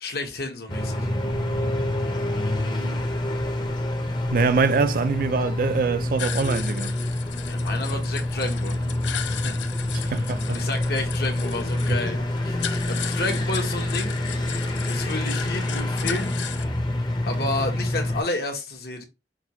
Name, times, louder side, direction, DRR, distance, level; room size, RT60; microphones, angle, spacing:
voice 1, 0.0-1.1 7.4-8.9 9.4-9.6 10.0-14.2 14.9-16.3 17.2-19.0, left 2 dB, 60° left, 1.1 m, -31 dB
sound 1, 0.7-18.2, left 1 dB, 25° left, 0.7 m, -27 dB
voice 2, 4.3-7.0 9.9-10.6, right 5 dB, 50° right, 0.3 m, -24 dB
sound 2, 6.2-16.6, left 10 dB, 85° left, 0.4 m, -36 dB
5.9 x 2.4 x 2.9 m
head